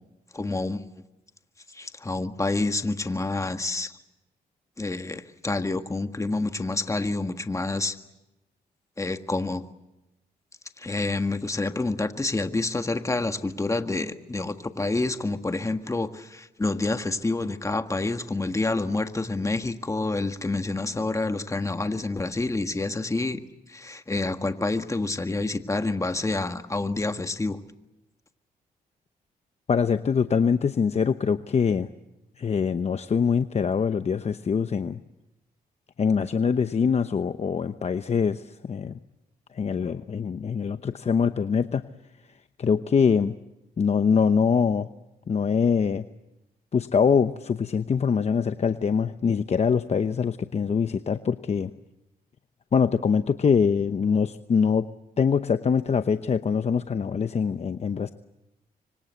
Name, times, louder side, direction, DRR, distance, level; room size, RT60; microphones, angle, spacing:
voice 1, 0.3-0.8 1.7-4.0 4.8-8.0 9.0-9.6 10.8-23.4 23.7-27.6, left 2 dB, 20° left, 8 dB, 1.7 m, -28 dB
voice 2, 29.7-31.9 32.4-35.0 36.0-39.0 39.5-41.8 42.6-43.3 43.8-44.9 45.3-46.0 46.7-51.7 52.7-54.9 55.2-58.1, left 6 dB, 40° left, 10 dB, 0.9 m, -23 dB
26.0 x 24.5 x 8.2 m, 0.95 s
cardioid pair, 80°, 16 cm